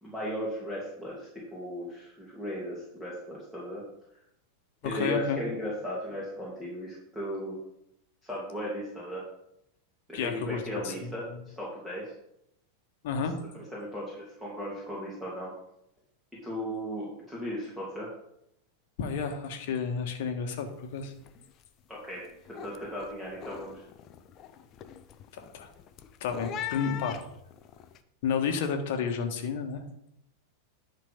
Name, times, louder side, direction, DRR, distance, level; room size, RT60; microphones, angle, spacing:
voice 1, 0.0-3.8 4.8-7.6 8.2-9.2 10.1-11.2 11.6-12.1 13.5-15.5 16.4-18.1 21.9-23.8, equal, 5° right, -6 dB, 2.7 m, -36 dB
voice 2, 4.8-5.4 10.1-11.4 13.0-13.4 19.0-21.1 25.3-25.7 26.2-27.2 28.2-29.8, left 6 dB, 50° left, 6 dB, 1.4 m, -31 dB
sound 1, 20.7-20.9 21.2-21.6 22.0-28.0, left 10 dB, 35° left, 0.6 m, -43 dB
10.5 x 5.4 x 5.3 m, 0.79 s
figure-of-eight pair, 90°, 0 cm